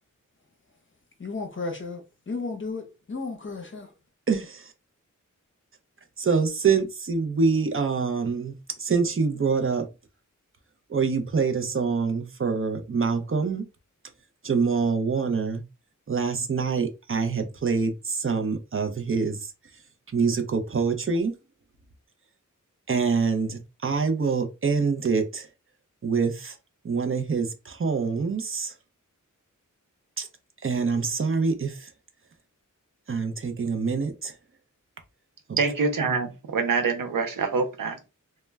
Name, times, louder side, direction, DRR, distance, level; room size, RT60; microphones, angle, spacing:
voice 1, 1.2-3.9, left 3 dB, 40° left, 0.7 m, -34 dB
voice 2, 4.3-4.7 6.2-9.9 10.9-13.6 14.4-15.6 16.1-19.5 20.1-21.3 22.9-25.5 26.0-26.6 26.8-28.7 30.2-30.3 30.6-31.9 33.1-34.4 35.5-35.6, right 5 dB, 40° right, 0.4 m, -25 dB
voice 3, 35.6-38.0, right 4 dB, 85° right, 0.6 m, -25 dB
2.1 x 2.1 x 3.3 m
wide cardioid pair, 80°, 32 cm